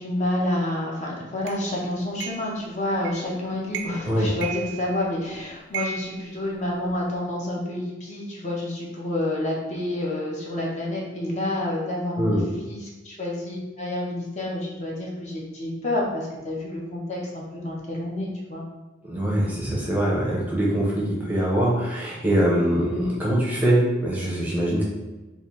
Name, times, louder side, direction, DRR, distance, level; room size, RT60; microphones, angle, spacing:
voice 1, 0.0-18.6 22.9-23.1, left 1 dB, 35° left, -3 dB, 0.7 m, -29 dB
sound 1, 1.5-1.6 2.2-2.5 3.0-3.3 3.7-4.1 4.4-5.2 5.7-7.0, right 6 dB, 70° right, 0.4 m, -35 dB
voice 2, 12.2-12.5 19.0-24.8, right 1 dB, 10° right, -5 dB, 0.6 m, -23 dB
3.9 x 2.5 x 3.0 m, 1.1 s
head